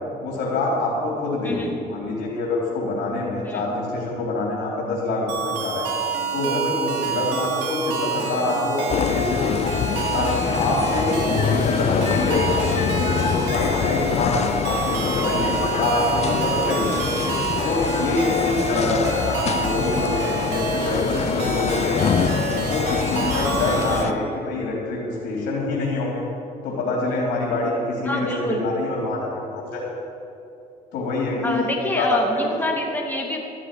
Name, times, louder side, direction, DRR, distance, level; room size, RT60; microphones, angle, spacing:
voice 1, 0.2-5.9 6.3-9.7 10.1-17.0 17.6-26.2 26.6-29.8 30.9-32.2 32.5-32.6, left 2 dB, 80° left, -4 dB, 3.7 m, -25 dB
voice 2, 3.4-3.8 18.7-19.0 23.9-24.2 28.0-28.6 31.4-33.4, left 1 dB, 10° left, 0 dB, 2.5 m, -27 dB
sound 1, 5.3-24.0, right 5 dB, 80° right, 2.4 m, -28 dB
sound 2, 8.9-24.1, left 8 dB, 40° left, 0.5 m, -25 dB
14.0 x 7.7 x 9.4 m, 2.8 s
cardioid pair, 110°, 17 cm